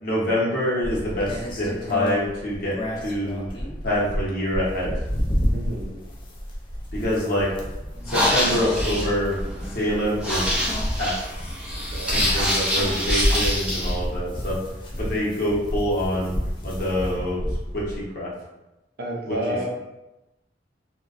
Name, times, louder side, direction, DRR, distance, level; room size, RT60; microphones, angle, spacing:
voice 1, 0.0-3.5 3.8-4.9 6.9-7.5 8.1-9.4 9.7-10.6 11.0-11.2 11.5-11.6 12.1-14.6 15.0-16.3 16.6-17.4 17.7-18.3 19.3-19.4, equal, 55° left, -6 dB, 0.8 m, -25 dB
sound 1, 0.8-18.0, equal, 30° left, 0.4 m, -31 dB
voice 2, 5.5-6.0 11.9-12.3 19.0-19.7, right 1 dB, 60° right, -1 dB, 0.5 m, -30 dB
sound 2, 8.0-13.9, equal, 5° right, 0.7 m, -25 dB
2.3 x 2.2 x 2.4 m, 0.98 s
head